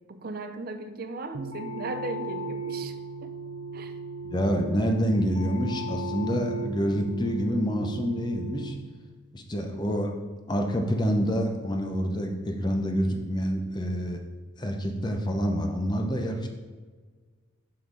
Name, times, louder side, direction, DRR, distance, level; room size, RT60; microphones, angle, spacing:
voice 1, 0.1-3.3 3.7-3.9, right 3 dB, 45° right, 8 dB, 0.5 m, -37 dB
sound 1, 1.3-8.7, right 2 dB, 90° right, 0.6 m, -36 dB
voice 2, 4.2-8.8 9.3-10.1 10.5-14.2 14.6-16.5, equal, 20° left, 3 dB, 0.7 m, -27 dB
6.4 x 5.8 x 3.8 m, 1.4 s
head